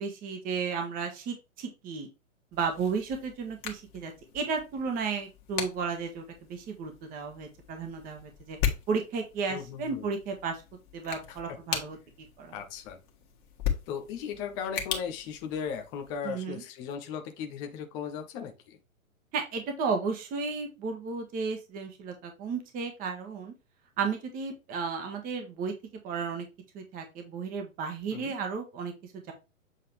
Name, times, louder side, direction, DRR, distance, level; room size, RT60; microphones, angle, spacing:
voice 1, 0.0-2.1 2.5-6.2 6.5-8.6 8.9-10.6 10.9-12.0 12.4-12.5 16.2-16.6 19.3-23.5 24.0-25.7 26.0-26.5 26.7-29.3, right 5 dB, 20° right, 1.5 m, -33 dB
sound 1, 2.5-16.2, left 8 dB, 35° left, 1.6 m, -38 dB
voice 2, 9.5-10.1 11.3-11.4 11.7-11.8 12.5-13.0 13.9-18.8 28.1-28.3, left 7 dB, 10° left, 0.4 m, -37 dB
7.8 x 3.9 x 3.3 m
figure-of-eight pair, 115°, 41 cm